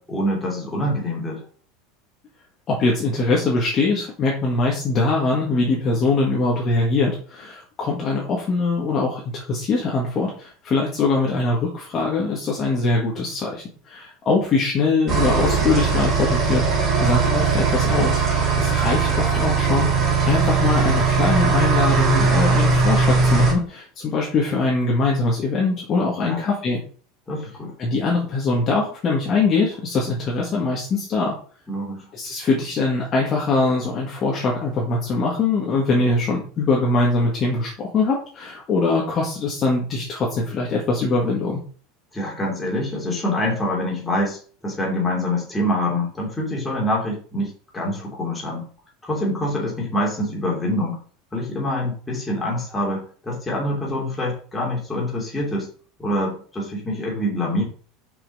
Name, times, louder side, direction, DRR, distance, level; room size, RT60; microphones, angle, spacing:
voice 1, 0.0-1.4 26.2-26.4 27.3-27.7 31.7-32.1 42.1-48.7 49.0-51.0 51.3-55.7 56.0-57.6, left 1 dB, 10° left, -3 dB, 2.9 m, -25 dB
voice 2, 2.7-18.2 18.6-19.9 20.2-26.8 27.8-31.4 32.1-41.6, left 3 dB, 30° left, -3 dB, 1.8 m, -22 dB
sound 1, 15.1-23.5, right 5 dB, 25° right, 3.5 m, -19 dB
6.0 x 5.6 x 5.5 m, 0.43 s
supercardioid pair, 160°, 0 cm